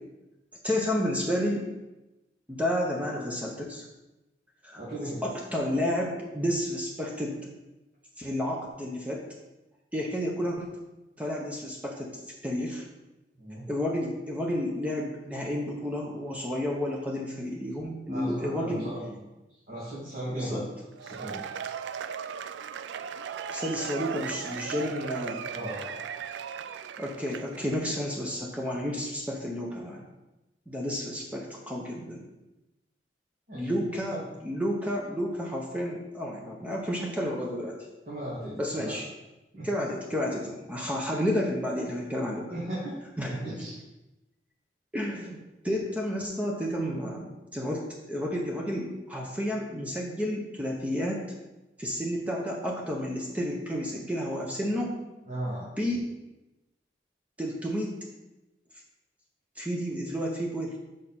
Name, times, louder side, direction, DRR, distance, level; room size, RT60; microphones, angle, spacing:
voice 1, 0.6-1.6 2.5-3.8 4.6-4.8 5.2-7.4 8.2-9.2 9.9-10.7 11.2-12.1 12.4-12.8 13.7-18.9 20.3-20.6 23.5-25.4 27.0-30.0 30.7-32.2 33.5-37.8 38.6-39.1 39.6-42.5 43.2-43.4 44.9-51.2 51.8-54.9 55.8-56.0 57.4-57.9 59.6-60.8, equal, 10° right, -1 dB, 0.8 m, -31 dB
voice 2, 4.7-5.2 13.4-13.6 18.1-19.2 19.7-20.7 21.0-21.4 25.5-26.0 33.5-33.8 34.1-34.3 38.1-39.0 39.5-39.7 42.5-43.0 43.4-43.8 55.3-55.7, right 1 dB, 50° right, -10 dB, 2.2 m, -36 dB
Cheering / Applause / Crowd, 21.0-27.8, right 7 dB, 80° right, 0.3 m, -37 dB
6.4 x 5.0 x 4.3 m, 1.0 s
head